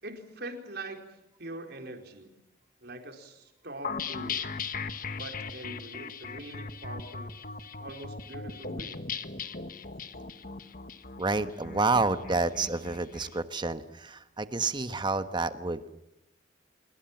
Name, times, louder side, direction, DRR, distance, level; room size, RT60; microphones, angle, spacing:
voice 1, 0.0-2.3 2.8-4.5 5.1-7.3 7.8-9.0, right 1 dB, 55° right, 5 dB, 4.5 m, -43 dB
sound 1, 3.8-13.3, left 5 dB, 45° left, 1.5 m, -38 dB
voice 2, 11.2-15.9, right 3 dB, 25° right, 11 dB, 1.3 m, -29 dB
26.5 x 23.0 x 7.4 m, 0.87 s
head